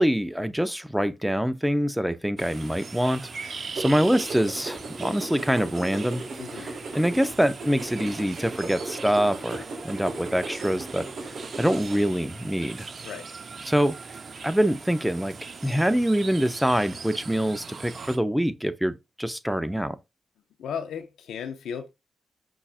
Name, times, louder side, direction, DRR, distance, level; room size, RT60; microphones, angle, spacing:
voice 1, 0.0-6.2 6.6-12.9 13.7-13.9 14.4-15.3 15.6-20.0, equal, 5° right, 0.5 m, -25 dB
sound 1, 2.4-18.2, right 4 dB, 60° right, 0.4 m, -40 dB
sound 2, 3.8-12.0, right 2 dB, 75° right, 1.0 m, -37 dB
voice 2, 6.4-6.8 13.0-13.3 20.6-21.9, left 7 dB, 90° left, 0.4 m, -35 dB
5.4 x 2.4 x 2.4 m
cardioid pair, 55°, 0 cm